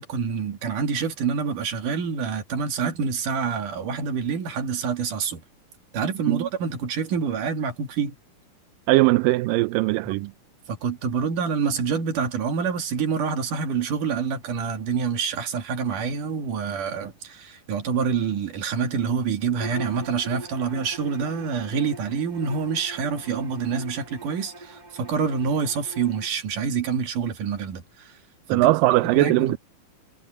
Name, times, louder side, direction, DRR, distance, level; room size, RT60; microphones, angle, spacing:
voice 1, 0.0-5.4 5.9-8.2 10.7-27.8 28.5-28.7 29.1-29.5, right 6 dB, 60° right, 3.6 m, -27 dB
voice 2, 8.9-10.3 28.5-29.6, right 19 dB, 80° right, 2.1 m, -20 dB
Bowed string instrument, 19.5-26.3, right 2 dB, 40° right, 0.6 m, -42 dB
omnidirectional pair, 4.3 m